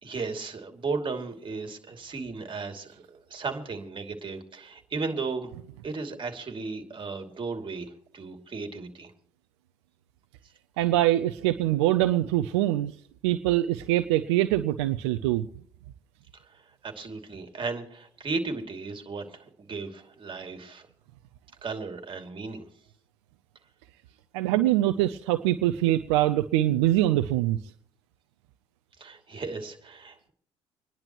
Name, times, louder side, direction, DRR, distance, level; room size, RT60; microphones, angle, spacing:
voice 1, 0.0-5.5 5.8-9.1 16.3-20.9 21.6-22.7 29.0-30.3, right 4 dB, 35° right, 4 dB, 2.7 m, -35 dB
voice 2, 10.8-12.9 13.2-15.4 24.3-27.6, right 14 dB, 80° right, 10 dB, 0.6 m, -24 dB
27.0 x 10.5 x 3.0 m, 0.62 s
hypercardioid pair, 60°, 14 cm